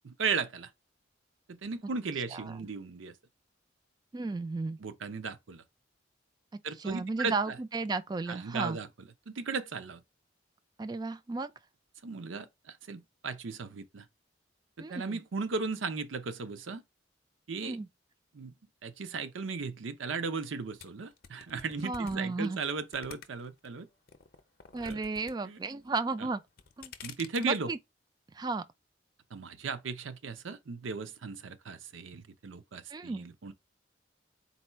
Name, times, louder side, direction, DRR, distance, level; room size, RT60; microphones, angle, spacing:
voice 1, 0.0-0.7 1.5-3.1 4.8-5.6 6.6-7.5 8.3-8.9 9.3-10.0 12.0-14.1 14.9-16.8 17.5-17.8 18.3-18.5 18.8-23.9 24.8-25.0 25.4-25.6 27.0-27.7 29.3-33.5, right 4 dB, 90° right, 0.6 m, -36 dB
voice 2, 4.1-4.8 6.8-8.8 10.8-11.5 14.8-15.2 17.6-17.9 21.8-22.6 24.7-26.4 26.8-26.9 27.4-27.8 28.3-28.6 32.9-33.3, right 3 dB, 20° right, 0.3 m, -34 dB
sound 1, 20.8-23.7 24.1-25.3 25.6-26.1 26.5-27.6, left 6 dB, 50° left, 0.6 m, -48 dB
4.2 x 2.2 x 4.4 m
head